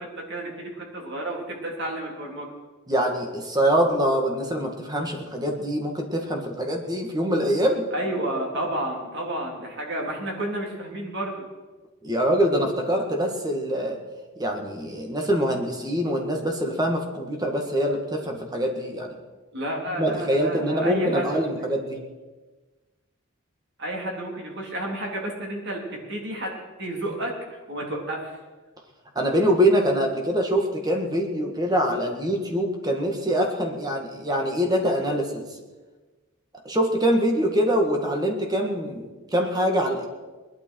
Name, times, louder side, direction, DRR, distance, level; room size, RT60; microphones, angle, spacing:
voice 1, 0.0-2.5 7.9-11.4 19.5-21.5 23.8-28.2, right 1 dB, 55° right, -1 dB, 3.6 m, -31 dB
voice 2, 2.9-7.9 12.0-14.0 14.4-19.1 20.0-22.0 29.2-35.5 36.6-40.1, equal, 20° right, 2 dB, 1.9 m, -24 dB
20.5 x 12.0 x 4.7 m, 1.3 s
head